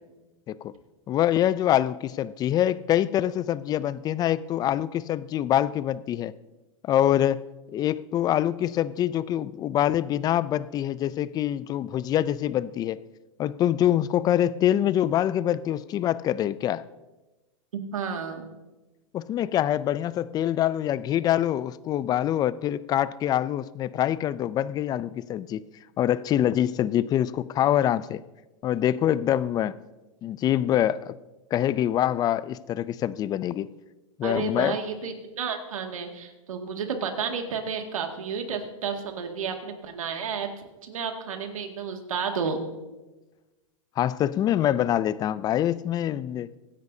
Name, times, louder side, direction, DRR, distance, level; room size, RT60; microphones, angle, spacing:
voice 1, 1.1-6.3 6.8-7.4 7.7-13.0 13.4-16.8 19.1-25.6 26.0-28.2 28.6-29.8 30.2-31.1 31.5-33.7 34.2-34.8 44.0-46.5, left 11 dB, 25° left, 18 dB, 0.4 m, -25 dB
voice 2, 17.7-18.5 34.2-40.5 40.8-42.6, right 6 dB, 90° right, 4 dB, 2.1 m, -31 dB
24.0 x 10.5 x 2.7 m, 1.1 s
hypercardioid pair, 130°, 17 cm